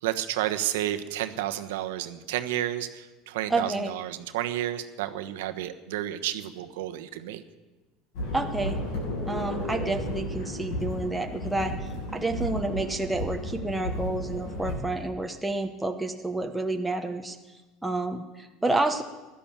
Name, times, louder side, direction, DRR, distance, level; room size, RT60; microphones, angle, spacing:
voice 1, 0.0-7.4, right 13 dB, 90° right, 8 dB, 1.2 m, -31 dB
voice 2, 3.5-3.9 8.3-8.8 9.3-11.7 12.1-17.4 17.8-19.0, right 2 dB, 5° right, 3 dB, 1.1 m, -29 dB
sound 1, 8.1-14.8, left 1 dB, 70° left, 7.6 m, -33 dB
16.0 x 12.0 x 7.4 m, 1.2 s
supercardioid pair, 125°, 0 cm